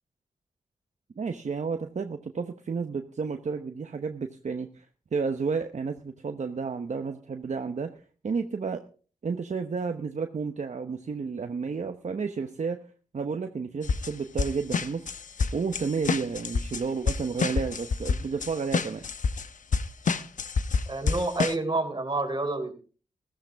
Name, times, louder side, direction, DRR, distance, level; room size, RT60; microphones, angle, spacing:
voice 1, 1.2-4.9 5.1-8.8 9.2-12.8 13.1-15.1 15.5-19.1, right 5 dB, 55° right, 6 dB, 1.0 m, -31 dB
sound 1, 13.8-14.1 14.4-19.5 19.7-21.5, left 5 dB, 65° left, 0.9 m, -27 dB
voice 2, 20.9-22.7, right 2 dB, 30° right, 5 dB, 3.5 m, -28 dB
14.5 x 14.0 x 3.5 m, 0.39 s
cardioid pair, 55°, 14 cm